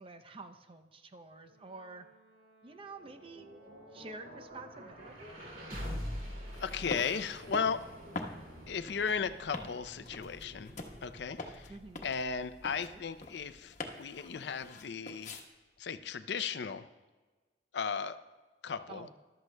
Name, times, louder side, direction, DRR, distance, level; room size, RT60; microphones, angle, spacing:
voice 1, 0.0-2.1 2.6-3.5 3.9-5.3 11.7-12.1 12.8-13.0 18.9-19.1, right 3 dB, 30° right, 7 dB, 0.6 m, -49 dB
Brass instrument, 1.4-7.8, right 1 dB, 75° right, 3.3 m, -65 dB
sound 1, 2.7-14.8, equal, 55° right, 2.4 m, -47 dB
sound 2, 6.5-15.4, left 2 dB, 45° left, 1.1 m, -45 dB
voice 2, 6.6-7.8 8.7-10.7 11.0-11.7 12.0-15.4 15.8-16.9 17.7-18.2 18.6-19.1, left 6 dB, 70° left, 12 dB, 0.5 m, -36 dB
14.0 x 12.0 x 2.2 m, 1.3 s
head